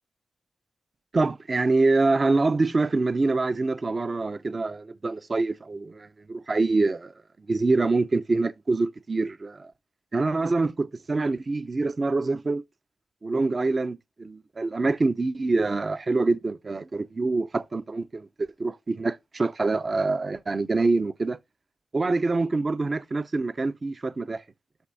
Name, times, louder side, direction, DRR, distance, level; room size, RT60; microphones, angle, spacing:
voice 1, 1.1-7.1 7.5-9.7 10.1-12.6 13.2-21.4 21.9-24.4, right 3 dB, 40° right, 0.4 m, -25 dB
11.5 x 6.0 x 2.6 m
cardioid pair, 60°, 0 cm